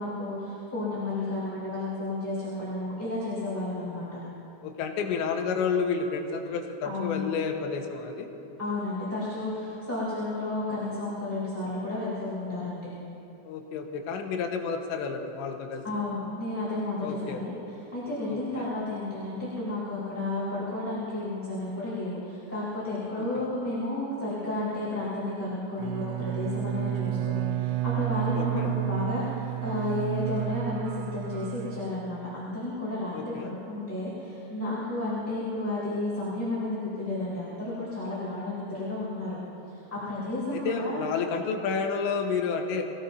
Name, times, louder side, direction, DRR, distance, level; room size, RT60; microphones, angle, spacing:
voice 1, 0.0-4.1 6.8-7.2 8.6-12.9 15.8-17.5 17.9-39.4 39.9-41.0, left 2 dB, 5° left, -11 dB, 3.8 m, -32 dB
voice 2, 4.6-8.4 13.4-15.8 17.0-17.4 18.3-18.7 23.2-23.4 28.3-28.7 33.1-33.5 40.5-42.8, left 5 dB, 85° left, 3 dB, 3.3 m, -30 dB
Bowed string instrument, 25.8-32.4, right 14 dB, 85° right, 2.7 m, -31 dB
26.0 x 17.0 x 2.7 m, 2.9 s
omnidirectional pair, 5.1 m